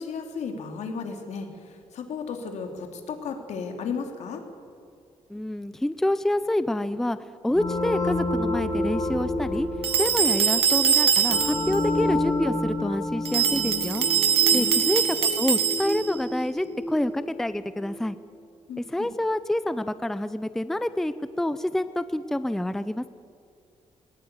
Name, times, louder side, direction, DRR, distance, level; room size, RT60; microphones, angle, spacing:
voice 1, 0.0-4.4 14.5-14.8 18.7-19.1, left 5 dB, 80° left, 4 dB, 3.1 m, -34 dB
voice 2, 5.3-7.2 7.4-9.7 10.0-14.1 14.5-15.0 15.4-18.2 18.8-23.1, left 1 dB, 5° left, 13 dB, 0.5 m, -27 dB
sound 1, 7.5-18.0, left 2 dB, 35° left, 2.7 m, -29 dB
sound 2, 9.8-11.8 13.3-16.2, right 7 dB, 55° right, 1.6 m, -23 dB
19.5 x 19.0 x 9.6 m, 2.3 s
wide cardioid pair, 170°, 12 cm